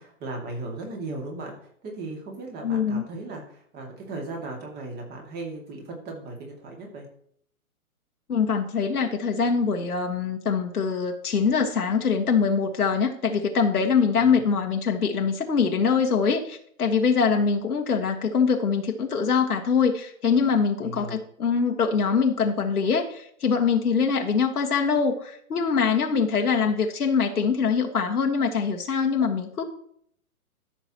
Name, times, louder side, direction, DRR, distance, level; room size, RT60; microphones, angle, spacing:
voice 1, 0.0-1.5 1.8-7.1 14.1-14.4 20.8-21.2, right 2 dB, 20° right, 1 dB, 2.3 m, -37 dB
voice 2, 2.6-3.0 8.3-29.6, left 5 dB, 80° left, 2 dB, 1.5 m, -23 dB
14.0 x 6.0 x 3.0 m, 0.65 s
hypercardioid pair, 135°, 44 cm